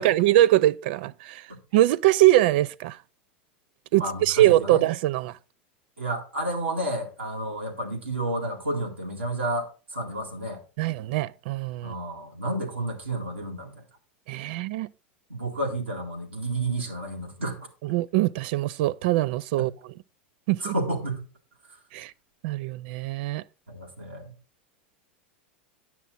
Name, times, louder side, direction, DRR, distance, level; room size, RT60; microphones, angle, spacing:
voice 1, 0.0-1.4 1.7-3.0 3.9-5.3 10.8-11.9 14.3-14.9 17.9-19.7 20.5-20.7 21.9-22.1 22.4-23.4, right 15 dB, 60° right, 0.4 m, -22 dB
voice 2, 4.0-4.9 6.0-10.6 11.8-13.8 15.3-17.7 19.6-19.7 20.6-21.2 23.7-24.3, right 1 dB, 90° right, 2.1 m, -31 dB
9.9 x 6.0 x 3.9 m
hypercardioid pair, 90°, 6 cm